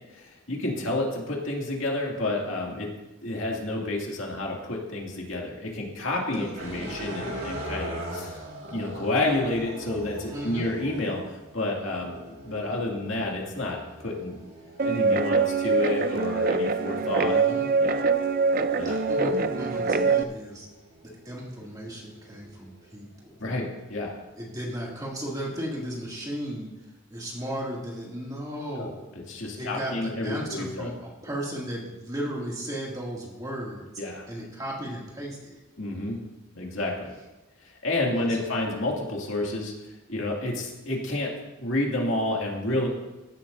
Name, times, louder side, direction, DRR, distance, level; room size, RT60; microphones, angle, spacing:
voice 1, 0.1-2.9 3.2-8.4 8.7-11.2 11.5-14.4 14.8-17.4 17.8-18.1 18.8-19.0 23.4-24.1 28.8-30.9 34.0-34.2 35.8-36.2 36.5-37.1 37.8-39.7 40.1-41.3 41.6-42.9, left 2 dB, 65° left, -2 dB, 2.3 m, -30 dB
voice 2, 6.3-7.0 10.3-10.7 17.2-17.7 18.8-20.7 21.0-23.3 24.4-26.7 27.1-29.1 29.6-33.9 34.3-35.6 38.2-38.4, equal, 20° right, -3 dB, 2.3 m, -35 dB
sound 1, 6.5-22.9 23.5-26.0, right 1 dB, 85° right, 4.8 m, -42 dB
Guitar, 14.8-20.2, right 4 dB, 45° right, 0.4 m, -24 dB
16.0 x 11.5 x 2.6 m, 1.1 s
head